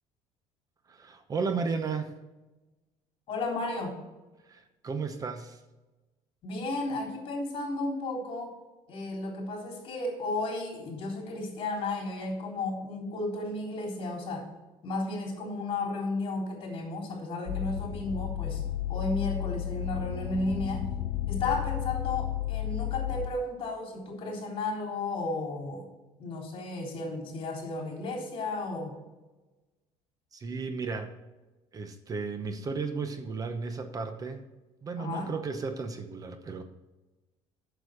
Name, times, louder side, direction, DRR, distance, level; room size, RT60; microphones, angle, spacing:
voice 1, 0.9-2.1 4.5-5.6 30.3-31.1 31.7-34.4 34.8-36.6, right 4 dB, 30° right, 8 dB, 0.8 m, -34 dB
voice 2, 3.3-4.0 6.4-8.5 8.9-14.5 14.8-18.6 18.9-20.9 21.3-25.9 26.2-29.0 35.0-35.3, left 2 dB, 50° left, 1 dB, 3.6 m, -33 dB
sound 1, 17.5-23.3, left 12 dB, 90° left, 0.9 m, -33 dB
8.2 x 6.9 x 6.4 m, 1.1 s
cardioid pair, 130°, 12 cm